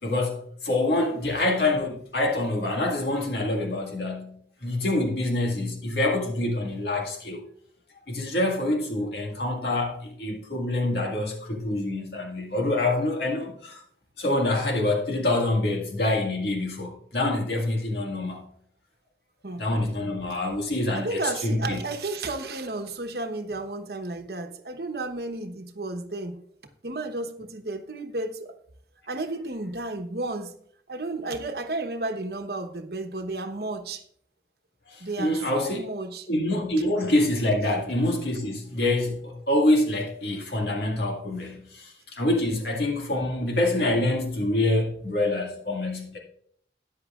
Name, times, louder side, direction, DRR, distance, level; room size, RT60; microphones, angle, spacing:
voice 1, 0.0-7.4 8.1-13.8 14.2-18.5 19.6-21.8 34.9-35.8 36.3-46.2, left 1 dB, 65° left, 1.9 m, -26 dB
voice 2, 20.9-26.4 26.8-28.5 29.1-30.5 30.9-34.0 35.0-36.3, right 2 dB, 60° right, 1.0 m, -32 dB
13.5 x 9.7 x 2.4 m
head